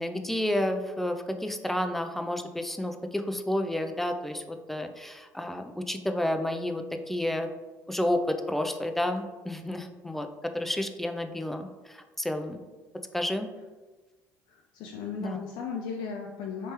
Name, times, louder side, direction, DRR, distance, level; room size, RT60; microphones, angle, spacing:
voice 1, 0.0-7.5 7.9-10.3 10.5-12.6 13.1-13.5 15.2-15.4, left 1 dB, 5° left, 6 dB, 0.4 m, -30 dB
voice 2, 14.5-16.7, left 5 dB, 70° left, 0 dB, 0.4 m, -36 dB
3.3 x 3.2 x 2.9 m, 1.3 s
supercardioid pair, 75°, 9 cm